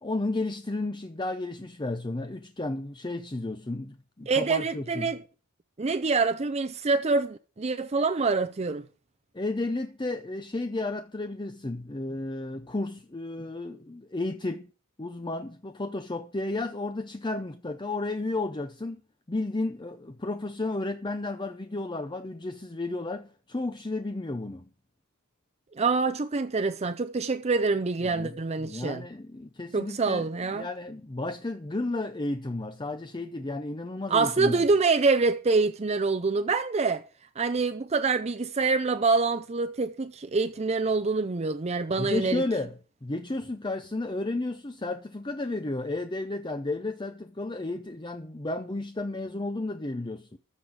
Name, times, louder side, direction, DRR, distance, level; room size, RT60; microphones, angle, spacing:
voice 1, 0.0-5.1 9.3-14.7 15.0-19.0 19.3-24.7 28.0-34.7 42.0-42.8 43.0-50.4, left 2 dB, 20° left, 0.6 m, -33 dB
voice 2, 4.3-5.2 5.8-8.8 25.8-29.0 29.7-30.7 34.1-37.0 37.4-42.4, right 4 dB, 30° right, 0.5 m, -26 dB
14.0 x 4.9 x 8.8 m
head